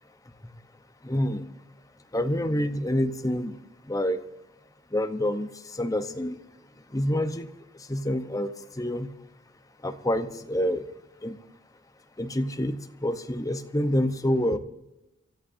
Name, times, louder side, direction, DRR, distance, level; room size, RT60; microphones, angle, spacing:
voice 1, 1.0-1.4 2.1-3.6 3.9-4.2 4.9-5.5 5.8-6.4 6.9-7.5 7.9-8.5 8.8-9.1 9.8-10.8 11.2-11.4 12.2-14.6, left 1 dB, 15° left, 8 dB, 0.8 m, -27 dB
26.0 x 13.5 x 2.6 m, 0.94 s
head